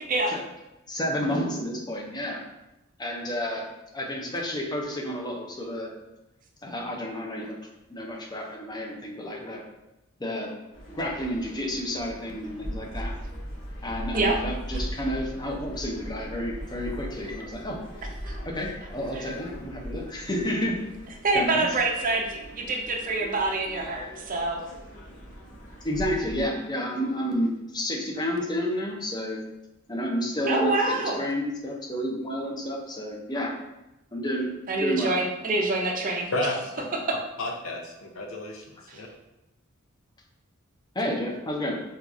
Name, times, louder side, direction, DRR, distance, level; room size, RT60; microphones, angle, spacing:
voice 1, 0.9-2.4 3.0-3.7 3.9-5.9 6.6-7.6 7.9-9.6 10.2-10.6 10.9-13.2 13.8-17.8 18.1-20.8 21.3-21.7 25.8-29.4 29.9-33.5 34.1-34.5 34.8-35.1 40.9-41.8, equal, 20° left, -1 dB, 0.5 m, -30 dB
sound 1, 10.7-26.5, equal, 40° left, 1.2 m, -39 dB
voice 2, 21.2-24.6 30.5-31.2 34.7-36.3 37.1-37.2 38.9-39.0, right 2 dB, 40° right, 2 dB, 0.5 m, -26 dB
voice 3, 36.3-36.8 37.4-39.1, left 1 dB, 80° left, 2 dB, 0.6 m, -32 dB
4.4 x 2.3 x 2.6 m, 0.94 s
head